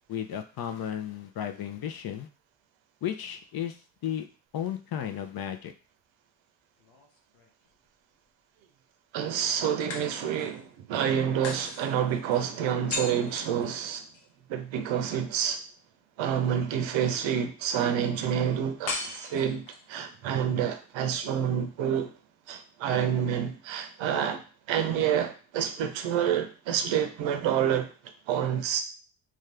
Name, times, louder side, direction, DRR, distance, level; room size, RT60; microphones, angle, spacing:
voice 1, 0.1-2.3 3.0-3.8 4.0-4.3 4.5-5.7, left 10 dB, 55° left, 0.5 m, -34 dB
sound 1, 6.8-7.9 9.9-10.7 11.4-14.3 18.9-19.9, left 3 dB, 80° left, 0.9 m, -38 dB
voice 2, 9.1-14.0 14.5-15.6 16.2-22.1 22.5-24.4 24.7-27.9 28.3-28.8, right 9 dB, 75° right, 0.7 m, -28 dB
2.6 x 2.4 x 3.2 m
supercardioid pair, 65°, 46 cm